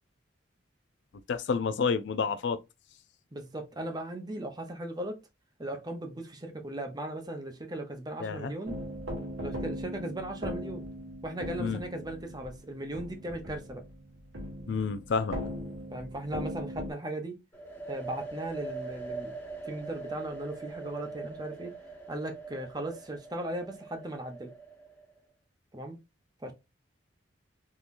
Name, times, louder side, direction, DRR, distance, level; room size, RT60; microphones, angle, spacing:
voice 1, 1.3-2.6 8.2-8.5 11.6-11.8 14.7-15.4, left 5 dB, 65° left, 0.4 m, -29 dB
voice 2, 3.3-5.2 5.6-8.8 9.4-10.8 11.2-13.8 15.9-17.4 17.9-19.3 19.6-21.7 22.1-24.5 25.7-26.0 26.4-26.5, right 1 dB, 20° right, 0.7 m, -37 dB
sound 1, 8.7-16.9, equal, 85° right, 1.5 m, -39 dB
sound 2, 17.5-25.2, right 3 dB, 10° left, 1.0 m, -42 dB
3.7 x 2.9 x 2.5 m
head